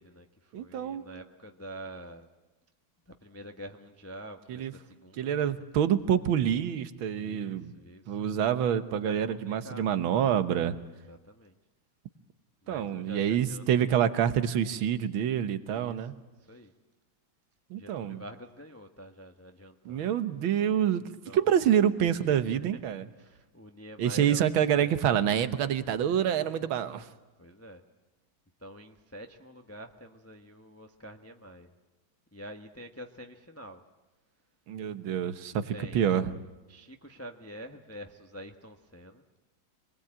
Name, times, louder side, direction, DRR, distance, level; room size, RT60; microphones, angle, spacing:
voice 1, 0.0-2.3 3.1-5.6 7.2-8.2 9.0-9.9 11.1-11.5 12.6-14.1 15.7-16.1 16.4-16.7 17.7-20.1 21.3-21.5 22.0-22.8 23.2-24.4 24.8-24.9 27.4-27.8 28.6-31.7 32.3-33.8 35.7-36.1 36.7-39.2, equal, 10° left, 5 dB, 0.8 m, -47 dB
voice 2, 0.5-1.0 4.5-4.7 5.2-7.7 8.1-10.8 12.7-16.2 17.7-18.2 19.9-23.0 24.0-27.1 34.7-36.3, right 9 dB, 80° right, 11 dB, 1.9 m, -27 dB
26.0 x 20.5 x 8.8 m, 1.1 s
omnidirectional pair, 2.2 m